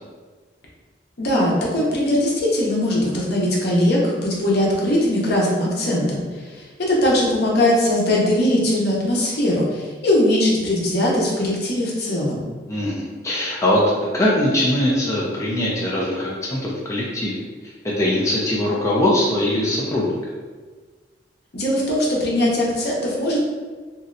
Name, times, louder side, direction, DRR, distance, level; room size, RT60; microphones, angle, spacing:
voice 1, 1.2-12.4 21.5-23.4, left 1 dB, 60° left, -3 dB, 0.8 m, -20 dB
voice 2, 12.7-13.8 14.1-20.2, left 1 dB, 15° left, -5 dB, 0.4 m, -22 dB
3.0 x 2.6 x 2.5 m, 1.4 s
head